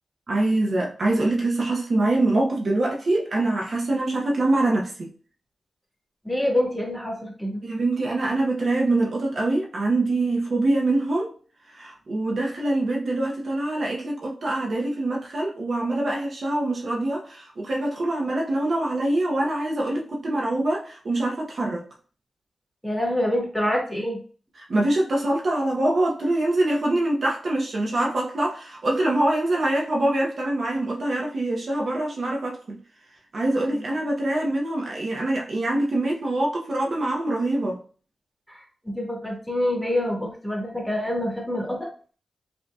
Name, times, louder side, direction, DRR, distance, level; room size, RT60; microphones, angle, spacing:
voice 1, 0.3-5.1 7.6-11.3 11.7-21.8 24.7-32.8 33.3-37.8, right 2 dB, 60° right, 0.8 m, -24 dB
voice 2, 6.2-7.6 22.8-24.2 33.7-34.0 38.5-41.9, left 1 dB, ahead, 1.5 m, -26 dB
5.1 x 2.8 x 2.3 m
cardioid pair, 70°, 0 cm